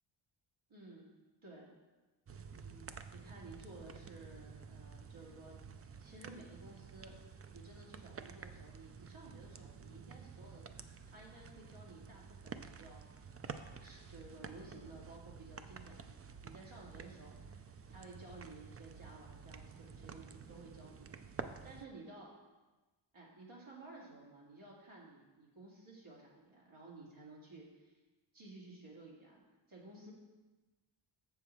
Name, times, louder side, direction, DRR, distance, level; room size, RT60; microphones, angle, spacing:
voice 1, 0.7-1.1 1.4-1.7 2.5-7.2 7.5-10.6 11.1-16.1 16.4-22.3 23.1-28.0 28.3-29.4 29.7-30.1, right 2 dB, 80° right, -4 dB, 2.3 m, -55 dB
sound 1, 2.3-21.8, right 6 dB, 30° right, 0.4 m, -51 dB
7.3 x 7.2 x 4.5 m, 1.2 s
wide cardioid pair, 100°, 48 cm